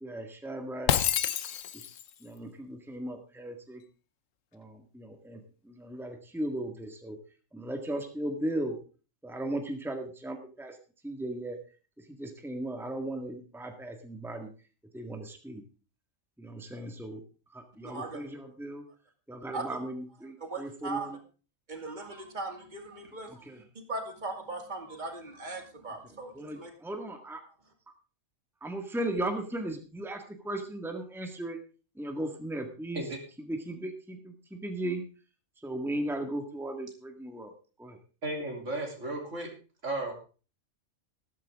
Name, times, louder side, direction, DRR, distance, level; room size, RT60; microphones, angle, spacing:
voice 1, 0.0-0.9 2.2-3.8 4.5-7.2 7.5-8.8 9.2-10.8 11.0-11.6 12.0-14.5 14.9-15.6 16.4-17.2 17.5-18.8 19.3-21.2 23.3-23.6 26.3-27.4 28.6-31.6 32.0-33.1 33.4-35.0 35.6-37.5 37.8-38.0, right 1 dB, ahead, 5 dB, 1.7 m, -37 dB
Shatter, 0.9-2.1, left 10 dB, 80° left, 1.2 m, -28 dB
voice 2, 17.8-18.2 19.5-19.8 20.4-21.2 21.7-23.6 23.9-26.7, right 2 dB, 35° right, 4 dB, 2.5 m, -39 dB
voice 3, 38.2-39.5 39.8-40.1, right 2 dB, 70° right, 2 dB, 3.6 m, -34 dB
14.0 x 13.0 x 3.6 m, 0.35 s
omnidirectional pair, 1.3 m